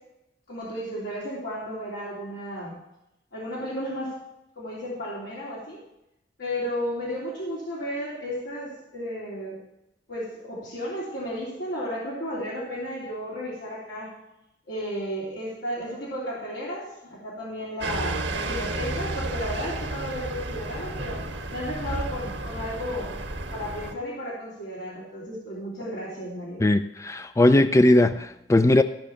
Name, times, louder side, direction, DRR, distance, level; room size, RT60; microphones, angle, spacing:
voice 1, 0.5-2.8 3.3-4.1 4.6-5.8 6.4-9.6 10.1-14.1 14.7-21.2 21.5-23.1 23.5-26.6, equal, 80° left, -7 dB, 3.4 m, -33 dB
sound 1, 17.8-23.9, right 2 dB, 90° right, 1.7 m, -32 dB
voice 2, 26.6-28.8, left 1 dB, 15° left, 10 dB, 0.4 m, -19 dB
14.5 x 6.3 x 6.9 m, 0.87 s
head